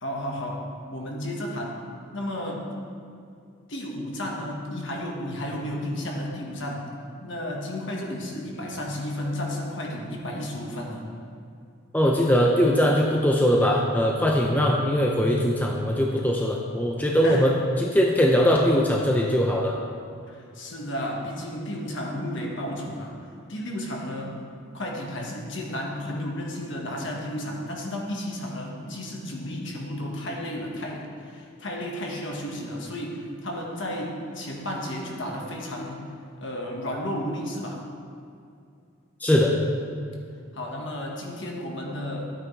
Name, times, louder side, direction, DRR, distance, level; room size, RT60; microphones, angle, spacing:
voice 1, 0.0-1.8 2.1-2.7 3.7-6.9 7.2-11.0 17.2-17.5 20.3-23.2 23.5-24.4 24.7-36.0 36.4-37.8 40.5-42.3, left 1 dB, 60° left, -1 dB, 1.5 m, -33 dB
voice 2, 11.9-17.5 17.8-19.8 39.2-39.5, equal, 10° left, -1 dB, 0.5 m, -21 dB
13.0 x 8.8 x 3.3 m, 2.4 s
head